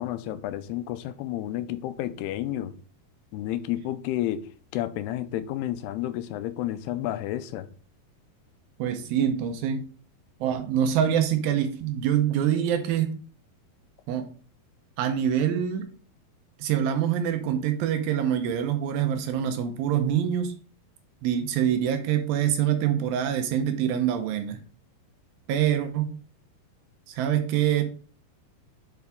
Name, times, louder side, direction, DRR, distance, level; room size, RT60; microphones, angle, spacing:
voice 1, 0.0-2.7 3.3-4.4 4.7-7.7, left 13 dB, 90° left, 2.6 m, -31 dB
voice 2, 8.8-9.8 10.4-13.2 14.1-14.3 15.0-15.9 16.6-20.5 21.2-24.6 25.5-26.1 27.1-27.8, right 9 dB, 80° right, 2.4 m, -25 dB
8.2 x 4.6 x 3.5 m
omnidirectional pair, 4.5 m